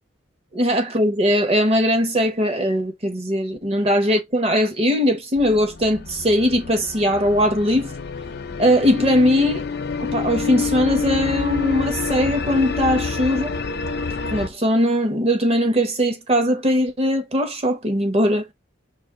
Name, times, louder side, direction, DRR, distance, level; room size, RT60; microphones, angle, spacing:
voice 1, 0.5-7.9 8.6-9.6 10.0-13.5 14.3-18.4, equal, 30° right, 1.0 m, -20 dB
sound 1, 5.4-14.5, left 4 dB, 50° left, 0.6 m, -28 dB
5.1 x 2.5 x 3.6 m
head